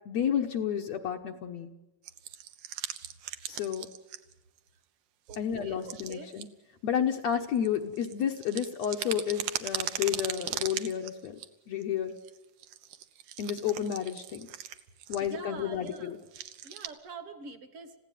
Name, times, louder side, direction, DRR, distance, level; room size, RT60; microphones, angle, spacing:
voice 1, 0.1-1.7 3.5-3.9 5.4-6.5 6.8-11.4 11.7-12.2 13.4-14.5 15.1-16.2, left 9 dB, 65° left, 3 dB, 1.9 m, -31 dB
sound 1, 2.0-4.3 4.6-4.7 5.3-5.4 5.8-6.4 7.2-11.5 11.8-11.9 12.2-15.4 15.9-16.0 16.2-16.9, right 11 dB, 75° right, 2.6 m, -39 dB
voice 2, 5.3-6.3 15.2-16.1 16.6-17.9, right 5 dB, 50° right, 10 dB, 2.0 m, -45 dB
30.0 x 16.0 x 9.2 m, 1.1 s
omnidirectional pair, 3.9 m